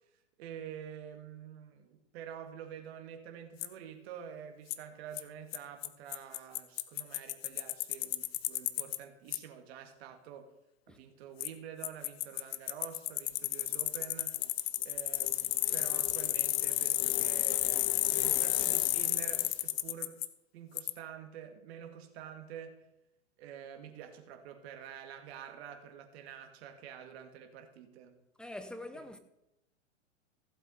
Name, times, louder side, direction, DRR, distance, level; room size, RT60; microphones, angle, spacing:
voice 1, 0.4-10.5 10.9-14.4 14.8-20.2 20.5-22.9 23.4-28.2 28.9-29.0, right 8 dB, 55° right, 1.9 m, -48 dB
Bicycle, 3.6-3.7 4.7-4.8 5.2-5.3 5.5-5.6 5.8-5.9 6.1-9.0 9.3-9.4 11.4-11.5 11.8-20.3 20.8-20.9, left 16 dB, 50° left, 0.7 m, -31 dB
voice 2, 28.4-29.2, left 1 dB, ahead, 0.7 m, -44 dB
15.5 x 7.5 x 4.0 m
hypercardioid pair, 115°, 38 cm